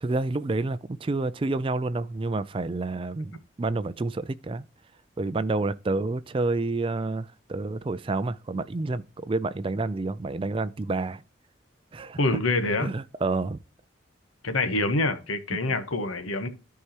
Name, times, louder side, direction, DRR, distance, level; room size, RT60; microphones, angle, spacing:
voice 1, 0.0-4.7 5.2-11.2 11.9-12.2 12.8-13.6 15.5-15.6, right 3 dB, 25° right, 0.3 m, -29 dB
voice 2, 12.2-12.9 14.4-16.5, left 2 dB, 90° left, 1.2 m, -26 dB
13.0 x 4.7 x 2.9 m
head